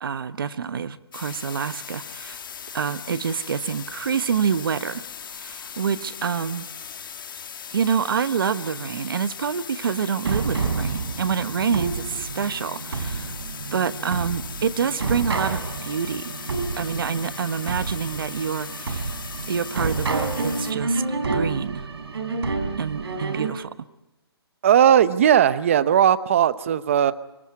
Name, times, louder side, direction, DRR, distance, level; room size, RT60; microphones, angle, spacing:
voice 1, 0.0-2.4 2.7-5.0 5.3-6.7 7.7-13.4 13.7-16.3 16.8-19.1 19.5-21.0 21.3-21.8 22.8-23.9, right 7 dB, 55° right, 13 dB, 1.1 m, -27 dB
sound 1, 1.1-20.7, left 7 dB, 50° left, 1.3 m, -38 dB
sound 2, 10.2-23.5, right 4 dB, 75° right, 3.3 m, -29 dB
voice 2, 24.6-27.1, right 9 dB, 30° right, 16 dB, 0.7 m, -17 dB
24.5 x 15.0 x 9.7 m, 0.96 s
hypercardioid pair, 170°, 14 cm